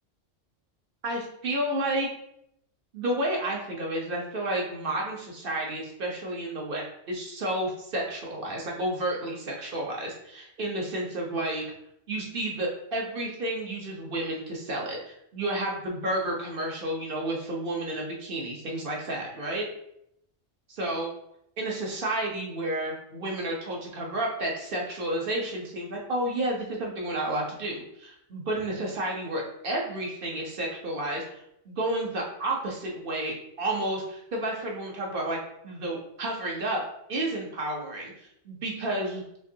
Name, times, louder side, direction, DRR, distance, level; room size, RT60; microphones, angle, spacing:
voice 1, 1.0-2.1 2.9-11.6 12.1-19.6 20.7-21.1 21.6-35.4 35.6-36.8 37.1-39.2, right 1 dB, 50° right, -1 dB, 1.0 m, -31 dB
5.9 x 2.6 x 2.7 m, 0.76 s
omnidirectional pair, 1.3 m